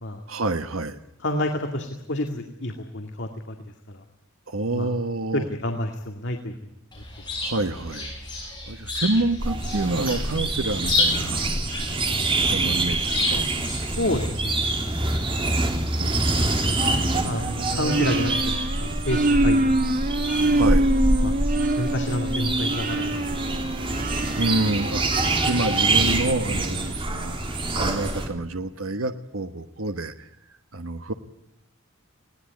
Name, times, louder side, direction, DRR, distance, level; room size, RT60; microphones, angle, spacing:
voice 1, 0.3-1.0 4.5-5.5 7.4-8.1 8.6-11.5 12.5-13.4 15.4-16.1 17.0-18.0 20.5-20.9 24.3-27.4 27.7-31.1, right 2 dB, 85° right, 8 dB, 1.2 m, -28 dB
voice 2, 1.2-3.5 3.9-4.0 4.7-4.9 5.3-6.5 14.0-14.6 17.2-19.8 21.2-21.4 21.8-23.2, left 1 dB, 60° left, 4 dB, 2.3 m, -29 dB
Chirp tweet, 6.9-14.5, left 2 dB, 20° left, 6.6 m, -30 dB
sound 1, 9.4-28.3, right 2 dB, 25° right, 3.5 m, -26 dB
sound 2, 16.8-26.6, right 2 dB, 40° right, 1.4 m, -26 dB
21.0 x 18.0 x 9.4 m, 0.86 s
head